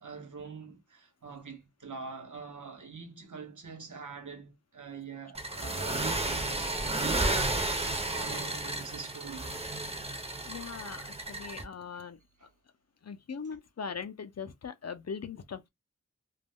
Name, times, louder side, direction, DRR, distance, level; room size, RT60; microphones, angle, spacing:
voice 1, 0.0-7.6 8.2-9.7, right 5 dB, 75° right, 0.8 m, -45 dB
sound 1, 5.3-11.6, right 2 dB, 20° right, 0.6 m, -32 dB
voice 2, 10.4-12.5 13.0-15.7, left 6 dB, 55° left, 0.5 m, -40 dB
2.3 x 2.1 x 3.4 m
wide cardioid pair, 50°, 31 cm